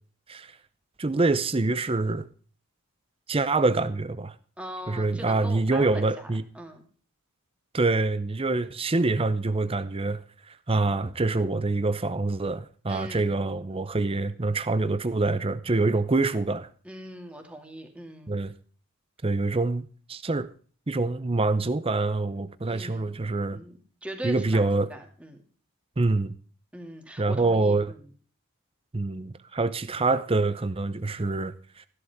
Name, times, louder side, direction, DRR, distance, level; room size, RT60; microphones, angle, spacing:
voice 1, 1.0-2.3 3.3-4.3 4.9-6.4 7.7-16.7 18.3-18.5 19.2-20.5 20.9-23.6 24.2-24.9 26.0-26.3 27.2-27.9 28.9-31.9, right 3 dB, 25° right, 0.6 m, -26 dB
voice 2, 4.6-6.3 6.5-6.8 12.9-13.3 16.8-18.3 22.7-23.2 23.5-25.4 26.7-28.1, right 1 dB, 5° right, 2.4 m, -40 dB
15.5 x 11.5 x 3.6 m
head